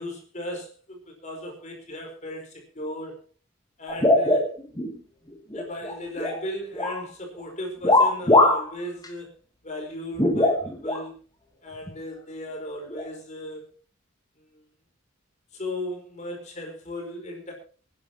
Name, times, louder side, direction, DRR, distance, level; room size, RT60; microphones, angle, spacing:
voice 1, 0.0-3.2 3.8-4.5 5.5-9.3 9.6-11.1 11.6-13.7 14.4-14.6 15.5-17.5, left 1 dB, 35° left, 1 dB, 4.6 m, -36 dB
sound 1, 3.9-5.0 5.3-6.4 6.7-7.1 7.8-8.7 9.0-9.1 10.2-11.0 11.9-12.0 12.9-13.1, left 2 dB, 20° left, 2.5 m, -21 dB
27.0 x 10.5 x 2.9 m, 0.38 s
head